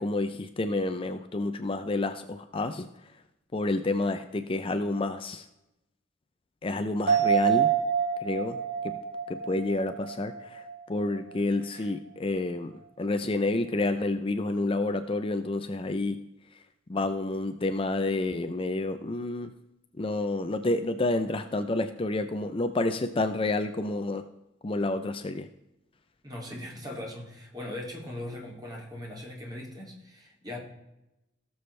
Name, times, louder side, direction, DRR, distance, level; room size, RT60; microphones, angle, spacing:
voice 1, 0.0-3.1 3.5-5.5 6.6-7.7 8.2-8.6 9.3-16.2 16.5-16.6 16.9-19.5 20.0-24.2 24.6-25.5, left 2 dB, 30° left, 8 dB, 0.5 m, -29 dB
sound 1, 7.1-10.8 11.1-11.2, right 8 dB, 55° right, 3.4 m, -27 dB
voice 2, 26.2-30.6, left 1 dB, 20° right, 0 dB, 2.5 m, -40 dB
17.5 x 7.0 x 3.2 m, 0.92 s
head